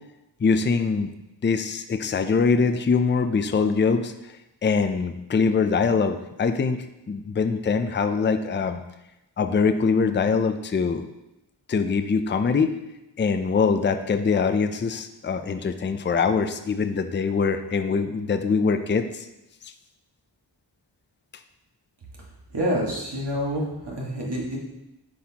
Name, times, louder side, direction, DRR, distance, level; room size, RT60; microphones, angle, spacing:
voice 1, 0.4-1.1 1.4-4.1 4.6-8.8 9.4-11.1 11.7-12.7 13.2-19.3, left 5 dB, 25° left, 8 dB, 0.4 m, -23 dB
voice 2, 22.5-24.6, equal, 70° right, -3 dB, 1.7 m, -27 dB
9.4 x 4.1 x 2.9 m, 0.93 s
wide cardioid pair, 60°, 43 cm